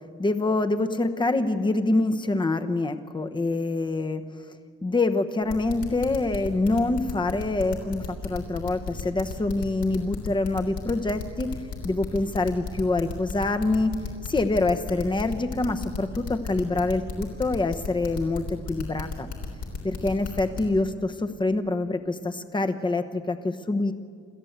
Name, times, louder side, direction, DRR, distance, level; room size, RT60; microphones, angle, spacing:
voice 1, 0.2-4.2 4.8-11.6 11.8-13.9 14.2-19.3 19.8-23.9, left 2 dB, 15° left, 8 dB, 1.0 m, -26 dB
sound 1, 5.5-20.6, left 5 dB, 75° left, 3.7 m, -34 dB
28.5 x 13.5 x 8.0 m, 2.2 s
wide cardioid pair, 155°, 29 cm